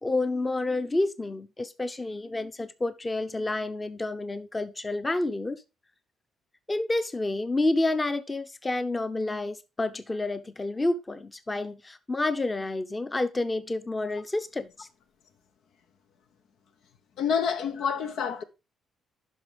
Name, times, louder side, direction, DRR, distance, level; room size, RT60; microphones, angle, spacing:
voice 1, 0.0-5.6 6.7-14.9, left 2 dB, 20° left, 0.8 m, -29 dB
voice 2, 17.2-18.4, left 7 dB, 80° left, 0.9 m, -27 dB
11.0 x 5.5 x 3.4 m
cardioid pair, 90°, 0 cm